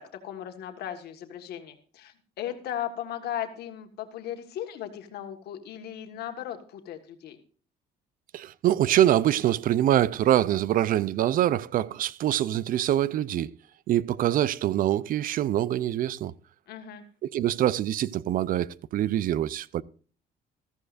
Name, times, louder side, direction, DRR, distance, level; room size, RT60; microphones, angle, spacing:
voice 1, 0.0-7.4 16.7-17.0, left 10 dB, 70° left, 1.6 m, -37 dB
voice 2, 8.3-13.5 13.9-16.3 17.2-19.8, right 12 dB, 55° right, 0.5 m, -24 dB
14.0 x 14.0 x 2.5 m
cardioid pair, 110°, 17 cm